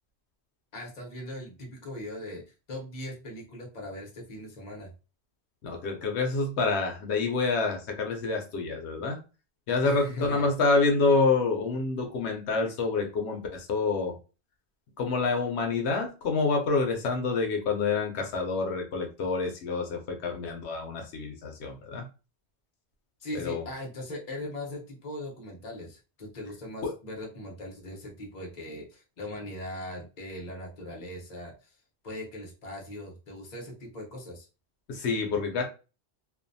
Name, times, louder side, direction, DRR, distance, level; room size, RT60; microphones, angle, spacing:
voice 1, 0.7-2.4 2.7-4.9 9.8-10.5 23.2-31.7 32.0-34.5, left 1 dB, 45° left, -1 dB, 0.9 m, -40 dB
voice 2, 5.6-9.2 9.7-14.2 15.0-22.1 23.3-23.6 26.8-26.9 34.9-35.6, left 4 dB, 80° left, 2 dB, 0.9 m, -27 dB
2.5 x 2.2 x 2.5 m, 0.32 s
omnidirectional pair, 1.1 m